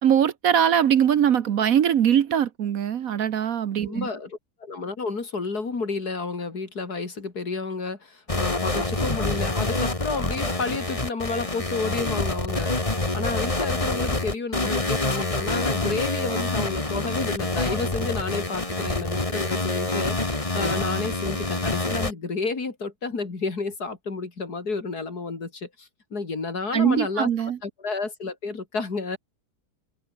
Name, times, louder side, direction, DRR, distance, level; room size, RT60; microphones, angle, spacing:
voice 1, 0.0-4.1 26.7-27.6, right 9 dB, 60° right, 1.2 m, -21 dB
voice 2, 3.8-12.8 13.1-29.2, left 4 dB, 65° left, 3.8 m, -31 dB
sound 1, 8.3-22.1, left 2 dB, 20° left, 2.2 m, -26 dB
omnidirectional pair, 1.8 m